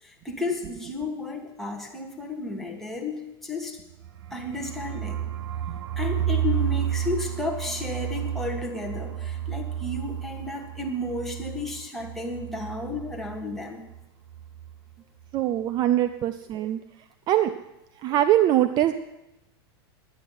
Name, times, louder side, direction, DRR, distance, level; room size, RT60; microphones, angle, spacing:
voice 1, 0.0-3.8 4.3-5.3 6.0-13.8 16.0-16.2, left 2 dB, ahead, 0 dB, 2.1 m, -33 dB
sound 1, 3.9-13.6 13.9-14.0 14.3-14.8, right 10 dB, 80° right, 0.7 m, -31 dB
voice 2, 15.3-16.8 17.3-17.5 18.0-18.9, right 12 dB, 35° right, 10 dB, 0.6 m, -22 dB
11.0 x 9.0 x 9.4 m, 0.93 s
supercardioid pair, 145°, 13 cm